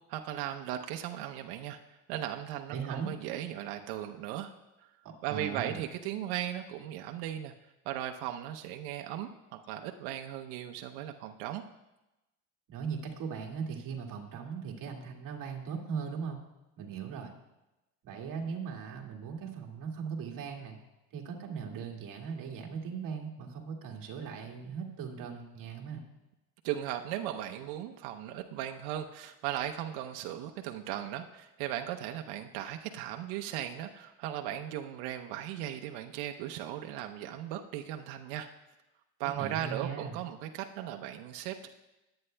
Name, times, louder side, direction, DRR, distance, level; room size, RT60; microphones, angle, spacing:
voice 1, 0.1-1.8 2.1-4.5 4.8-4.9 5.2-7.5 7.9-11.6 26.6-38.5 39.2-41.7, right 11 dB, 75° right, 4 dB, 0.8 m, -37 dB
voice 2, 2.7-3.1 5.3-5.8 12.7-16.4 16.8-17.3 18.0-20.8 21.1-26.1 39.4-40.2, right 6 dB, 50° right, 0 dB, 2.1 m, -39 dB
21.0 x 8.9 x 2.2 m, 1.0 s
supercardioid pair, 110°, 42 cm